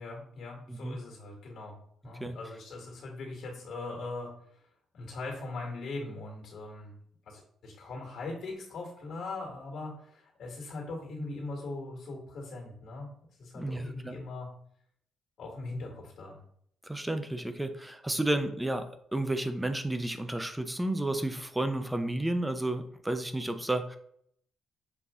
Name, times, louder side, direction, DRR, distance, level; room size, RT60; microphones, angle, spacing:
voice 1, 0.0-1.8 2.0-4.3 4.9-6.9 7.3-13.1 13.4-14.5 15.4-16.4, left 2 dB, 65° left, 0 dB, 1.6 m, -40 dB
voice 2, 13.5-14.2 16.8-18.9 19.1-24.0, right 1 dB, 10° right, 8 dB, 0.5 m, -31 dB
5.9 x 2.5 x 3.5 m, 0.66 s
cardioid pair, 90°, 0 cm